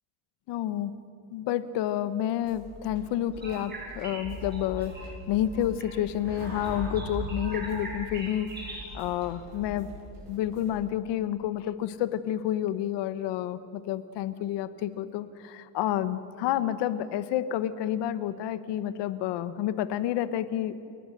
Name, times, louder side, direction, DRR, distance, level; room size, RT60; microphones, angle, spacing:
voice 1, 0.5-0.9 1.3-9.9 10.3-20.7, left 11 dB, 85° left, 14 dB, 1.2 m, -30 dB
sound 1, 2.4-10.8, equal, 80° right, 7.9 m, -50 dB
sound 2, 3.3-10.0, right 1 dB, 25° right, 7.1 m, -39 dB
29.0 x 19.5 x 6.6 m, 2.5 s
cardioid pair, 150°, 41 cm